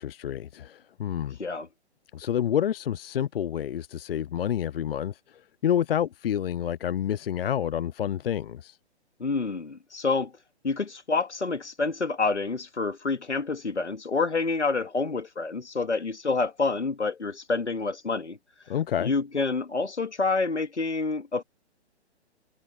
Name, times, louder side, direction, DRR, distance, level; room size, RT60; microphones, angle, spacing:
voice 1, 0.0-1.4 2.1-8.8 18.7-19.1, left 10 dB, 55° left, 0.5 m, -28 dB
voice 2, 9.2-10.3 10.6-18.4 19.0-21.4, left 4 dB, 85° left, 2.5 m, -28 dB
figure-of-eight pair, 135°, 34 cm